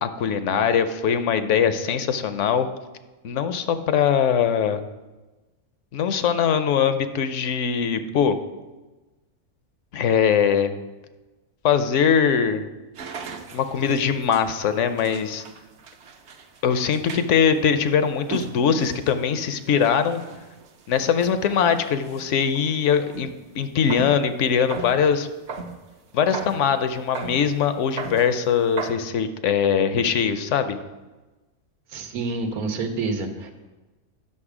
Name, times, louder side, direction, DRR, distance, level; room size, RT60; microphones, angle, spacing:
voice 1, 0.0-2.7 3.2-4.8 5.9-8.4 9.9-10.7 11.6-12.7 13.5-15.4 16.6-20.2 20.9-25.3 26.1-30.8, left 7 dB, 65° left, 10 dB, 0.9 m, -21 dB
sound 1, 12.9-23.3 23.7-24.2 24.6-25.8 26.3-26.6 27.1-27.4 27.7-28.3 28.8-28.9, right 5 dB, 55° right, 0.9 m, -37 dB
voice 2, 31.9-33.5, right 3 dB, 85° right, 6 dB, 1.5 m, -28 dB
9.8 x 6.4 x 4.9 m, 1.2 s
omnidirectional pair, 1.5 m